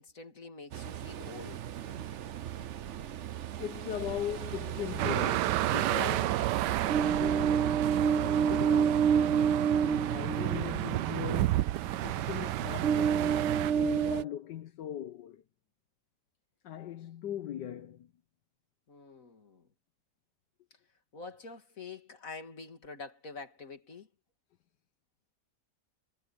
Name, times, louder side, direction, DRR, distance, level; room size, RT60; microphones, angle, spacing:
voice 1, 0.0-1.7 8.5-8.7 9.3-10.1 18.9-19.7 21.1-24.1, left 4 dB, 50° left, 3.0 m, -46 dB
Ocean, 0.7-14.2, right 7 dB, 60° right, 0.8 m, -31 dB
voice 2, 3.6-6.6 7.0-11.7 12.0-15.4 16.6-18.1, left 11 dB, 80° left, 1.5 m, -40 dB
sound 1, 5.0-13.7, right 15 dB, 75° right, 1.2 m, -31 dB
omnidirectional pair, 1.9 m